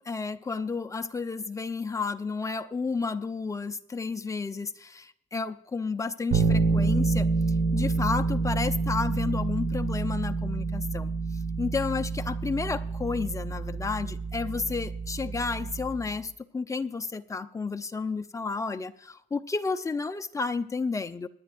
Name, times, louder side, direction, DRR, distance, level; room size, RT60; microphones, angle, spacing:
voice 1, 0.0-7.3 7.7-11.1 11.6-21.3, left 4 dB, 20° left, 8 dB, 0.7 m, -31 dB
Bass guitar, 6.3-16.2, right 4 dB, 55° right, 1.9 m, -28 dB
25.5 x 10.0 x 2.6 m, 0.71 s
cardioid pair, 110°, 17 cm